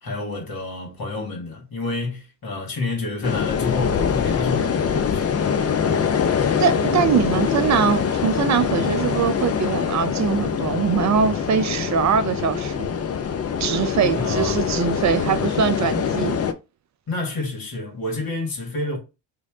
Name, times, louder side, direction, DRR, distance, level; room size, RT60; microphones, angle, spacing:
voice 1, 0.0-5.3 14.1-14.7 17.1-19.0, left 3 dB, 45° left, 1.8 m, -29 dB
sound 1, 3.2-16.5, left 7 dB, 30° left, 0.6 m, -23 dB
voice 2, 6.6-12.9 13.6-16.4, right 7 dB, 35° right, 0.5 m, -22 dB
3.1 x 2.8 x 3.7 m
supercardioid pair, 65°, 48 cm